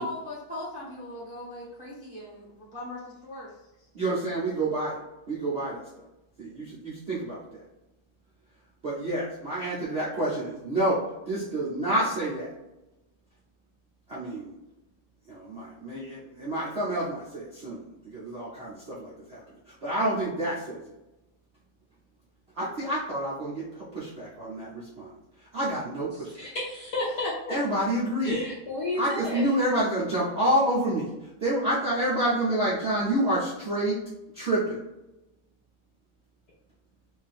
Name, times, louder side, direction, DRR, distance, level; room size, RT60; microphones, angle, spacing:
voice 1, 0.0-3.5, left 1 dB, 10° right, -7 dB, 0.5 m, -39 dB
voice 2, 3.9-5.0 5.3-5.8 6.4-7.6 8.8-12.5 14.1-14.5 15.3-20.8 22.6-23.6 23.9-25.1 25.5-26.3 27.5-28.4 29.0-31.1 31.4-34.0 34.3-34.8, right 1 dB, 55° right, -9 dB, 0.7 m, -28 dB
voice 3, 26.1-27.6 28.2-29.5, left 2 dB, 65° left, -5 dB, 1.0 m, -32 dB
3.4 x 2.8 x 3.5 m, 0.97 s
omnidirectional pair, 2.3 m